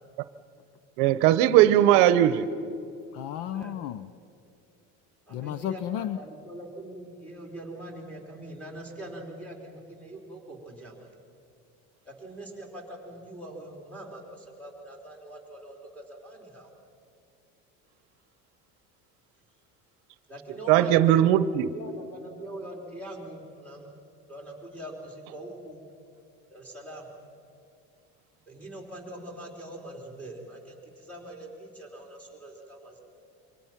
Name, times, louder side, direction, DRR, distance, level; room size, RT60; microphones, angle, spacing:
voice 1, 1.0-2.5 20.7-21.7, right 12 dB, 75° right, 0.9 m, -19 dB
voice 2, 3.1-4.1 5.3-6.2, left 11 dB, 50° left, 0.5 m, -33 dB
voice 3, 5.3-11.1 12.0-16.7 20.3-23.9 24.3-25.8 26.5-27.1 28.5-33.0, right 1 dB, 5° left, 3.4 m, -43 dB
26.5 x 23.5 x 5.8 m
cardioid pair, 175°, 33 cm